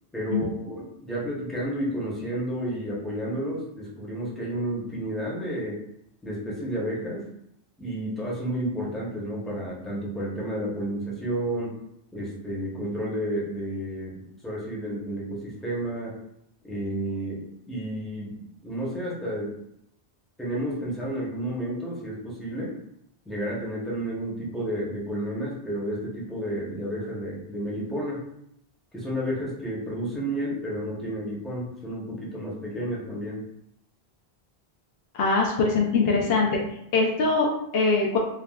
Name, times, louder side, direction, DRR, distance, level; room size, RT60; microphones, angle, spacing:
voice 1, 0.1-5.8 6.2-7.2 7.8-11.8 12.1-16.1 16.6-19.5 20.4-22.7 23.2-28.2 28.9-33.4, right 1 dB, ahead, -6 dB, 0.7 m, -31 dB
voice 2, 35.1-36.6 36.9-38.2, left 3 dB, 70° left, -1 dB, 0.8 m, -22 dB
3.5 x 2.2 x 2.3 m, 0.77 s
omnidirectional pair, 1.0 m